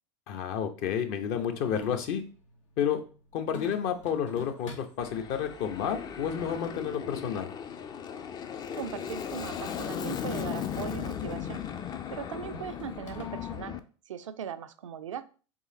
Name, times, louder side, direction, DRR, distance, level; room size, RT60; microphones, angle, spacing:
voice 1, 0.3-2.2 2.8-3.0 3.3-7.5, left 8 dB, 55° left, 6 dB, 0.8 m, -30 dB
sound 1, 1.3-13.6, left 5 dB, 80° left, 0.9 m, -50 dB
Aircraft, 5.0-13.8, left 8 dB, 25° left, 0.4 m, -37 dB
voice 2, 8.8-11.6 12.1-13.8 14.1-15.3, right 8 dB, 85° right, 11 dB, 0.4 m, -39 dB
4.0 x 2.8 x 3.8 m, 0.38 s
hypercardioid pair, 85°, 16 cm